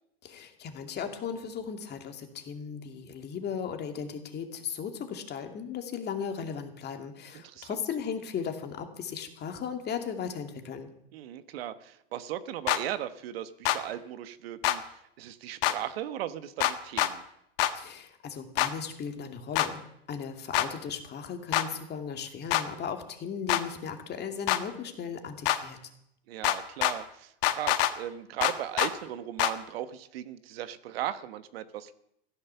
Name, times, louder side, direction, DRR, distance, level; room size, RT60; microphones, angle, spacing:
voice 1, 0.2-10.9 17.7-25.8, left 7 dB, 35° left, 5 dB, 2.4 m, -37 dB
voice 2, 7.3-7.8 11.1-17.2 26.3-31.9, right 12 dB, 75° right, 12 dB, 1.3 m, -37 dB
sound 1, 12.7-12.8 13.6-13.8 14.6-14.8 15.6-15.8 16.6-17.1 17.6-17.7 18.6-18.7 19.6-19.7 20.5-20.7 21.5-21.7 22.5-22.6 23.5-23.6 24.5-24.6 25.5-25.6 26.4-26.9 27.4-27.9 28.4-28.9 29.4-29.5, left 14 dB, 65° left, 1.5 m, -25 dB
15.5 x 10.5 x 7.0 m, 0.76 s
hypercardioid pair, 110°, 30 cm